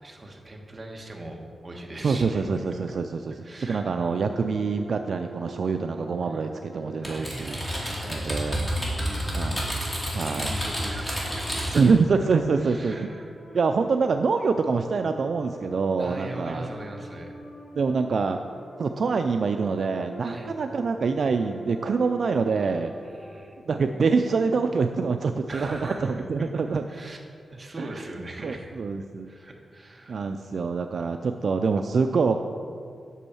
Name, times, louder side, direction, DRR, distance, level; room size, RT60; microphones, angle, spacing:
voice 1, 0.0-2.5 3.4-4.5 6.3-6.4 7.0-9.5 10.1-11.9 12.6-13.6 16.0-17.3 20.2-20.6 23.0-23.6 25.5-26.5 26.9-27.2 27.5-28.7 29.2-30.3, right 1 dB, 25° right, 1 dB, 1.2 m, -41 dB
voice 2, 2.0-3.3 3.6-8.6 9.3-9.6 10.1-10.5 11.7-13.1 13.5-16.7 17.8-18.4 18.8-22.9 23.6-26.8 27.8-27.9 28.4-29.3 30.1-32.4, right 4 dB, 60° right, 6 dB, 0.3 m, -25 dB
sound 1, 4.1-23.4, right 1 dB, 85° left, 2.7 m, -45 dB
Typing, 7.0-12.0, equal, 15° left, 2.3 m, -30 dB
8.3 x 6.2 x 7.1 m, 2.3 s
wide cardioid pair, 125°, 0 cm